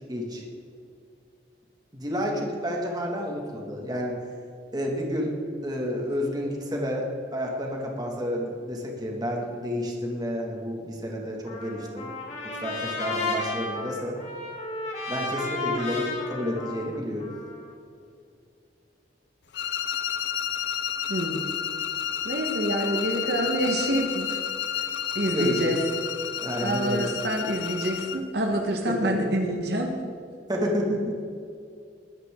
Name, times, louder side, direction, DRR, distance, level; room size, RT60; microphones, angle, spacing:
voice 1, 0.1-0.4 1.9-4.2 4.7-5.3 5.6-12.1 12.4-14.2 15.1-17.3 25.3-25.7 26.4-27.1 28.9-29.4 30.5-31.2, equal, 25° right, 0 dB, 2.3 m, -30 dB
Trumpet, 11.5-17.7, left 2 dB, 40° left, 2.9 m, -33 dB
sound 1, 19.5-28.3, left 9 dB, 80° left, 0.7 m, -31 dB
voice 2, 21.1-21.4 22.2-24.4 24.8-24.9 25.1-25.8 26.6-29.9, right 1 dB, 65° right, 2 dB, 1.5 m, -27 dB
21.0 x 10.5 x 3.9 m, 2.4 s
head